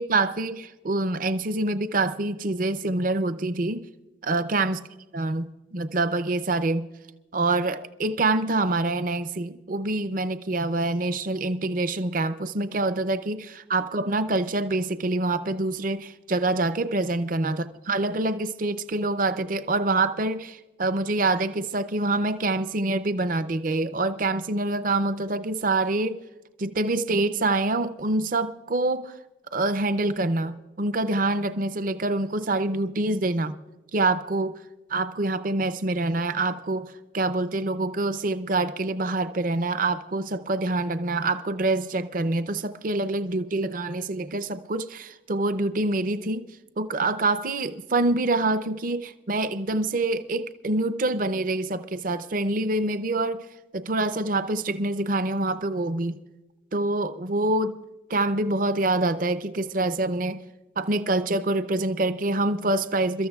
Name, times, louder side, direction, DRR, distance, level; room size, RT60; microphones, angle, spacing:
voice 1, 0.0-3.8 4.2-4.8 5.1-5.4 5.7-6.8 7.3-26.2 26.6-29.1 29.5-33.6 33.9-34.6 34.9-46.5 46.8-53.5 53.7-56.2 56.7-57.8 58.1-60.4 60.8-63.3, right 2 dB, 45° right, 0.6 m, -26 dB
29.0 x 13.5 x 2.4 m
head